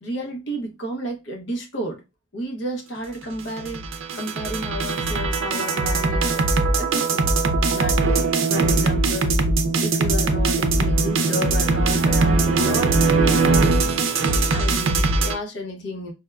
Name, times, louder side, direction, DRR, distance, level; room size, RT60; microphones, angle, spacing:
voice 1, 0.0-2.0 2.3-3.8 4.1-7.3 7.7-9.4 9.8-13.0 14.5-16.1, equal, 60° left, 0.8 m, -32 dB
sound 1, 3.4-15.4, right 3 dB, 90° right, 0.5 m, -20 dB
4.3 x 2.1 x 2.3 m
head